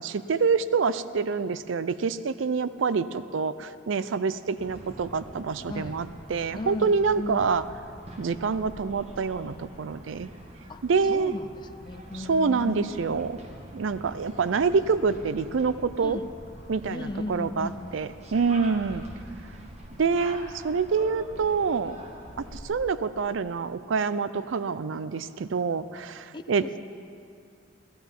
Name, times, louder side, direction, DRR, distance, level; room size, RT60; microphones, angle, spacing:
voice 1, 0.0-7.6 8.2-10.3 10.8-11.4 12.3-13.4 13.7-16.2 16.7-19.0 20.0-22.0 22.4-26.6, right 5 dB, 80° right, 14 dB, 0.5 m, -26 dB
sound 1, 4.5-22.6, right 1 dB, 35° right, 1.5 m, -45 dB
voice 2, 5.7-6.0 6.5-7.5 10.7-12.9 16.0-16.3 16.9-17.9 19.8-20.3 26.3-26.8, left 2 dB, 25° left, 10 dB, 0.4 m, -36 dB
16.0 x 14.0 x 5.4 m, 2.4 s
head